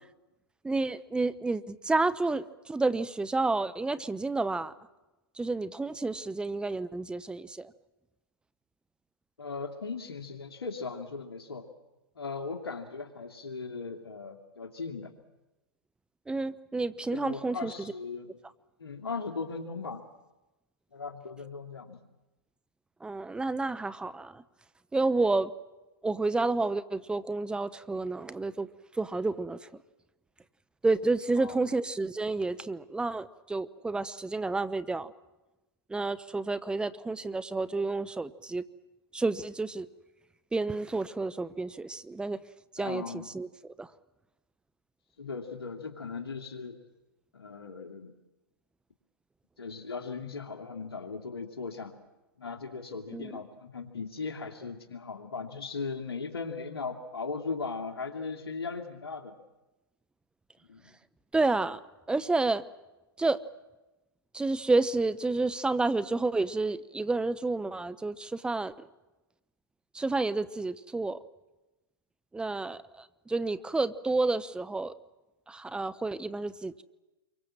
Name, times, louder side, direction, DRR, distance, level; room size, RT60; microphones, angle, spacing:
voice 1, 0.6-4.7 5.4-7.7 16.3-17.9 23.0-24.4 24.9-25.5 26.0-28.7 29.0-29.7 30.8-35.1 35.9-38.6 39.1-39.9 40.5-42.4 42.7-43.9 53.1-53.3 61.3-61.8 62.1-62.6 63.2-63.4 64.3-68.7 69.9-71.2 72.3-74.9 75.5-76.8, right 3 dB, 5° right, 14 dB, 0.8 m, -30 dB
voice 2, 9.4-11.7 12.2-15.1 17.0-18.3 18.8-20.0 20.9-22.0 31.4-31.7 42.8-43.3 45.2-46.8 47.3-48.1 49.6-51.9 52.4-59.3 60.7-61.0, left 4 dB, 80° left, 4 dB, 2.6 m, -38 dB
28.0 x 24.0 x 7.5 m, 1.1 s
hypercardioid pair, 115°, 13 cm